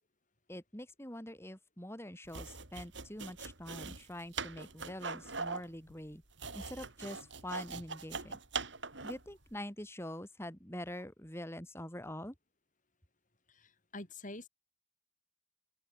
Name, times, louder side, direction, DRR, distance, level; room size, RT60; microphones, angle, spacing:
voice 1, 0.5-6.2 6.5-8.4 9.0-12.3, left 1 dB, 15° left, 6.0 m, -45 dB
sound 1, 2.2-9.3, right 4 dB, 75° right, 7.5 m, -42 dB
voice 2, 13.6-14.5, left 2 dB, 45° left, 4.6 m, -46 dB
open air
head